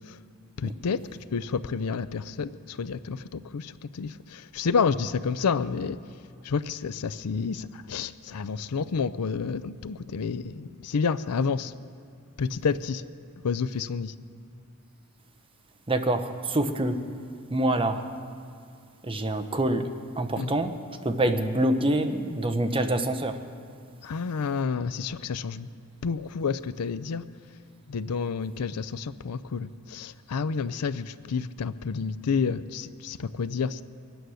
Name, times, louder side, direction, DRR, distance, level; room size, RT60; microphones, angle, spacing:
voice 1, 0.6-1.0 1.3-6.0 6.4-11.7 12.4-13.0 13.4-14.1 20.3-20.7 24.0-25.7 26.0-27.2 27.9-33.8, left 5 dB, 85° left, 15 dB, 0.5 m, -29 dB
voice 2, 15.9-17.0 17.5-18.0 19.0-19.8 20.2-20.7 21.0-23.4, right 1 dB, 25° right, 8 dB, 0.9 m, -26 dB
23.0 x 9.2 x 6.4 m, 2.3 s
head